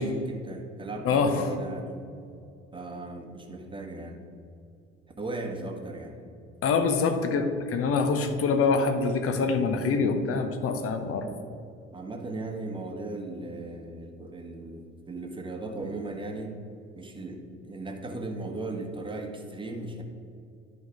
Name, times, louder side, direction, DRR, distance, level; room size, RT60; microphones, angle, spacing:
voice 1, 0.0-2.1 2.7-4.2 5.2-6.2 11.9-16.5 16.9-20.0, right 2 dB, 15° right, 3 dB, 1.2 m, -37 dB
voice 2, 1.0-1.5 6.6-11.3, left 4 dB, 40° left, 7 dB, 1.0 m, -25 dB
10.5 x 4.7 x 4.9 m, 2.5 s
figure-of-eight pair, 55°, 33 cm